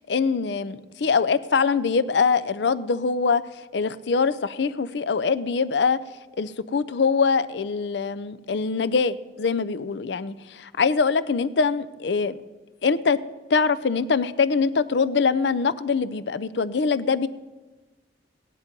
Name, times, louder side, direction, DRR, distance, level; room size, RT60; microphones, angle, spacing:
voice 1, 0.1-3.4 3.7-6.0 6.4-12.4 12.8-13.2 13.5-17.3, left 5 dB, 65° left, 15 dB, 0.5 m, -23 dB
17.0 x 10.5 x 5.3 m, 1.3 s
head